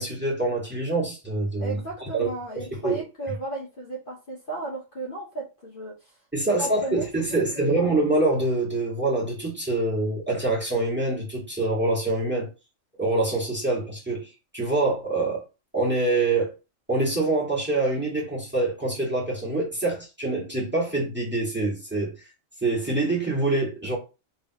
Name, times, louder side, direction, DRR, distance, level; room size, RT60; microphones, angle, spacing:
voice 1, 0.0-2.3 2.5-3.0 6.3-12.5 13.0-15.4 15.7-16.5 16.9-22.1 22.6-24.0, right 2 dB, 10° right, 1.9 m, -25 dB
voice 2, 1.6-6.1 6.6-7.1 7.5-7.8, right 2 dB, 45° left, 1.2 m, -35 dB
4.0 x 3.6 x 3.0 m
omnidirectional pair, 1.3 m